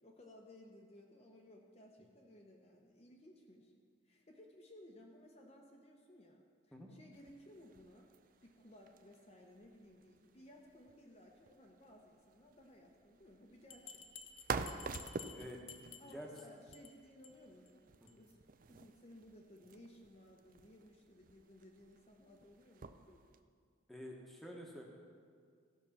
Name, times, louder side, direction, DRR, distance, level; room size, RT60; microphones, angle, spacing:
voice 1, 0.0-3.7 4.0-8.1 8.4-14.1 16.0-17.8 18.1-18.4 18.6-23.2, left 1 dB, 30° left, -1 dB, 0.8 m, -59 dB
sound 1, 7.1-23.4, right 4 dB, 45° right, 0.4 m, -50 dB
Bell, 13.7-16.4 16.7-16.9 17.2-17.3 17.7-17.8 18.1-18.2, left 6 dB, 80° left, 0.8 m, -53 dB
voice 2, 15.3-16.3 18.0-18.1 23.9-24.8, equal, ahead, -1 dB, 1.2 m, -49 dB
15.5 x 5.9 x 5.8 m, 2.1 s
head